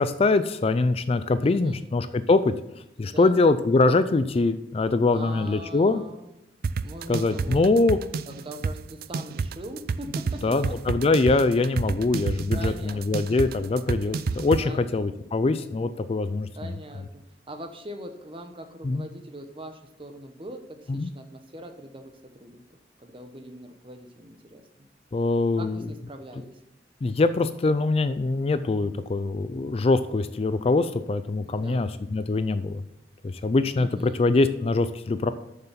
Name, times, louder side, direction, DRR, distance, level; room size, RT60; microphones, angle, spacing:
voice 1, 0.0-2.5 3.0-6.0 7.1-8.0 10.4-16.8 18.8-19.0 20.9-21.1 25.1-25.8 27.0-32.8 33.4-35.3, left 3 dB, 35° left, 12 dB, 0.3 m, -23 dB
voice 2, 1.4-1.8 3.0-3.4 4.9-6.4 6.8-7.7 8.3-10.8 12.5-13.2 14.6-15.3 16.5-17.2 17.5-22.6 23.0-24.6 25.6-26.6 31.4-32.1 33.8-34.3, right 1 dB, 30° right, 6 dB, 0.9 m, -42 dB
sound 1, 6.6-14.6, right 4 dB, 55° right, 0.3 m, -29 dB
6.9 x 6.7 x 5.7 m, 0.87 s
head